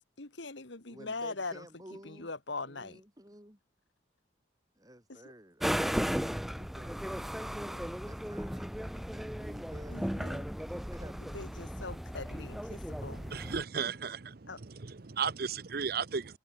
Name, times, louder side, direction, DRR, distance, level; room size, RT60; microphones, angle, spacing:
voice 1, 0.2-1.7 2.0-3.0 5.1-5.2 9.9-10.4 11.3-13.2 14.5-14.6, left 3 dB, 65° left, 1.8 m, -41 dB
voice 2, 0.9-2.3 2.7-3.6 4.8-10.1 10.6-11.4, right 1 dB, 20° right, 4.6 m, -52 dB
sound 1, 5.6-13.6, equal, ahead, 0.4 m, -36 dB
voice 3, 13.1-16.4, right 6 dB, 50° right, 0.7 m, -35 dB
head